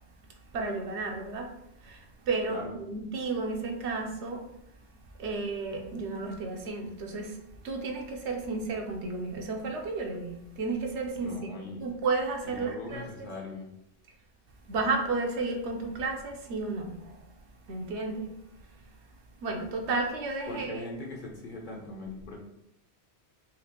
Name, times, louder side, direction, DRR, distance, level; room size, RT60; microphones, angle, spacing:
voice 1, 0.5-1.5 1.8-4.4 5.2-7.4 7.6-13.3 14.7-17.2 17.7-18.3 19.4-20.8, right 3 dB, 75° right, 3 dB, 0.9 m, -32 dB
voice 2, 11.1-11.9 12.4-13.7 20.5-22.4, left 2 dB, 50° left, -1 dB, 0.8 m, -40 dB
4.2 x 2.4 x 2.8 m, 0.78 s
omnidirectional pair, 1.2 m